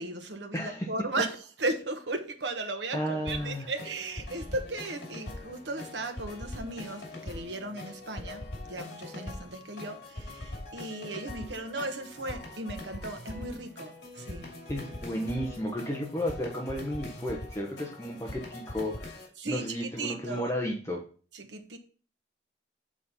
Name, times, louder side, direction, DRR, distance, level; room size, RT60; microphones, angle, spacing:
voice 1, 0.0-14.5 19.4-20.5 21.3-21.8, right 2 dB, 80° right, 1.2 m, -36 dB
voice 2, 0.5-0.9 2.9-3.7 14.7-21.0, equal, 15° left, 0.9 m, -33 dB
sound 1, 3.3-19.3, left 2 dB, 60° left, 2.4 m, -42 dB
7.5 x 4.1 x 5.6 m
head